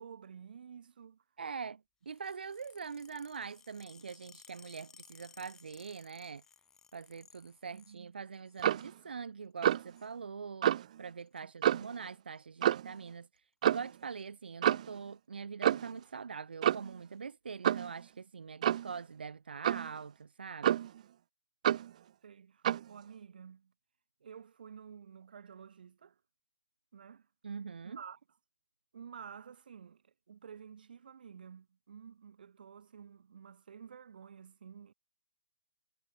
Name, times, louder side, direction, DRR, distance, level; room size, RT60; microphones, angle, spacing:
voice 1, 0.0-1.2 7.7-8.1 11.4-11.8 22.2-23.7 24.2-26.2 26.9-27.3 27.8-28.2 28.9-34.9, right 7 dB, 65° right, 6.2 m, -51 dB
voice 2, 1.4-1.8 2.1-6.4 6.9-10.7 11.0-20.8 27.4-28.0, right 5 dB, 90° right, 0.9 m, -43 dB
sound 1, 2.1-8.0 8.3-8.9 9.6-10.1 11.2-11.4 12.4-12.7 13.0-13.1 13.4-13.5 13.8-14.2 14.9-15.0 15.9-16.0, left 7 dB, 10° left, 3.1 m, -60 dB
Clock, 8.6-8.9 9.6-9.9 10.6-10.9 11.6-12.0 12.6-12.9 13.6-13.9 14.6-14.9 15.6-16.0 16.6-17.0 17.6-17.9 18.6-18.9 19.6-19.9 20.6-21.0 21.6-21.9 22.6-22.9, right 11 dB, 45° right, 0.8 m, -29 dB
hypercardioid pair, 160°, 5 cm